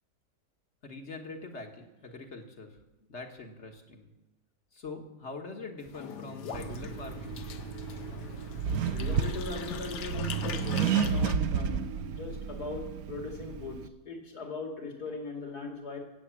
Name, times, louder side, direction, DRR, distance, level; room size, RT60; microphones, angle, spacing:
voice 1, 0.8-2.7 3.0-4.1 4.7-7.4, left 3 dB, 45° left, 4 dB, 1.6 m, -43 dB
sound 1, 5.8-11.4, left 6 dB, 80° left, 1.5 m, -41 dB
Accelerating revving vroom, 6.5-13.9, right 7 dB, 70° right, 1.1 m, -32 dB
voice 2, 8.9-16.0, left 3 dB, 65° left, 1 dB, 3.0 m, -40 dB
17.0 x 8.1 x 7.4 m, 1.0 s
omnidirectional pair, 1.8 m